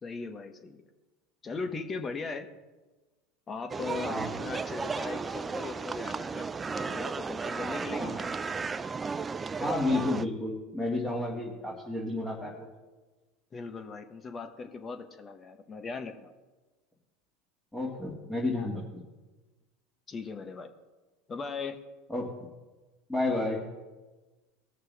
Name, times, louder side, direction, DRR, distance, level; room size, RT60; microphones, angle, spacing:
voice 1, 0.0-0.8 1.4-2.5 3.5-6.5 6.7-8.1 13.5-16.3 20.1-20.7 21.3-21.8, left 4 dB, 30° left, 7 dB, 1.3 m, -38 dB
sound 1, 3.7-10.3, right 4 dB, 20° right, 0.4 m, -34 dB
voice 2, 7.9-8.2 9.6-12.7 17.7-19.0 22.1-22.3 23.1-23.6, left 2 dB, 10° left, -4 dB, 2.3 m, -31 dB
19.5 x 6.6 x 3.6 m, 1.2 s
hypercardioid pair, 90°, 0 cm